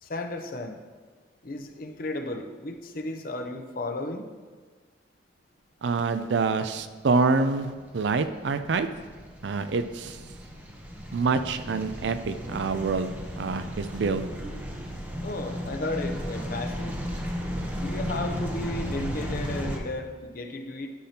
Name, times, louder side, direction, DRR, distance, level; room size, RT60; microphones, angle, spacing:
voice 1, 0.0-0.8 1.4-4.3 15.2-17.0 17.8-20.9, left 2 dB, 50° left, 5 dB, 0.6 m, -34 dB
voice 2, 5.8-8.9 9.4-10.2 11.1-13.1 13.4-14.3, right 4 dB, 75° right, 10 dB, 0.4 m, -26 dB
sound 1, 6.9-19.8, equal, 10° right, 0.7 m, -35 dB
sound 2, 11.5-18.8, right 1 dB, 45° right, 1.6 m, -47 dB
11.5 x 5.8 x 2.8 m, 1.4 s
head